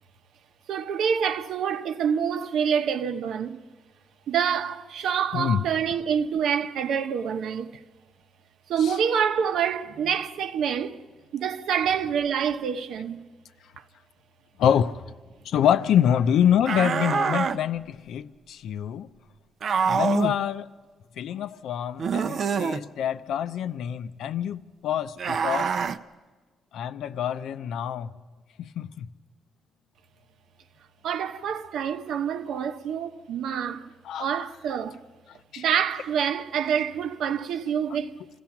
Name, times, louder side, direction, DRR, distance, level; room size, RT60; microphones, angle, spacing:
voice 1, 0.7-3.6 4.3-7.7 8.7-11.1 11.3-13.3 31.0-33.9 34.2-35.0 35.6-38.1, right 7 dB, 75° right, 1.0 m, -27 dB
voice 2, 5.3-5.6 8.8-9.0 14.6-15.0 15.4-19.1 19.8-20.7 21.2-25.7 26.7-28.1 28.6-29.1 34.0-34.5 35.5-35.6, left 9 dB, 80° left, 0.6 m, -26 dB
sound 1, 16.7-17.6 19.6-20.4 22.0-22.8 25.2-26.0, right 6 dB, 45° right, 0.5 m, -25 dB
26.5 x 16.5 x 5.9 m
cardioid pair, 170°, 0 cm